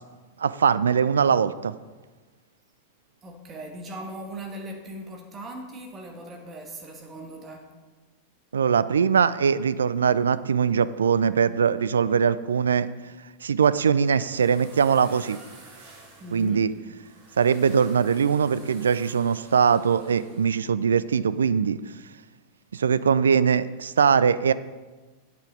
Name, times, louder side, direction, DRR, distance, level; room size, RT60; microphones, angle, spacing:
voice 1, 0.4-1.7 8.5-12.9 13.4-15.4 16.3-16.7 17.4-21.8 22.7-24.5, right 6 dB, 70° right, 16 dB, 0.3 m, -21 dB
voice 2, 3.2-7.7 16.2-16.7, right 1 dB, 25° right, 1 dB, 1.5 m, -39 dB
sound 1, 13.7-20.5, right 3 dB, 45° right, 2.2 m, -50 dB
8.9 x 8.1 x 5.1 m, 1.3 s
figure-of-eight pair, 90°, 0 cm